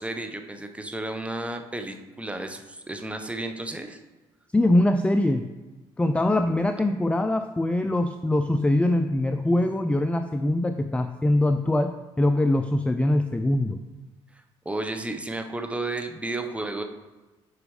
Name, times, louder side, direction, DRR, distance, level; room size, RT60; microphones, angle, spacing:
voice 1, 0.0-4.0 14.6-16.8, right 2 dB, 10° right, 6 dB, 1.0 m, -32 dB
voice 2, 4.5-5.5 6.0-11.9 12.2-13.8, left 1 dB, 10° left, 7 dB, 0.4 m, -23 dB
8.3 x 5.0 x 4.9 m, 1.2 s
cardioid pair, 80°, 11 cm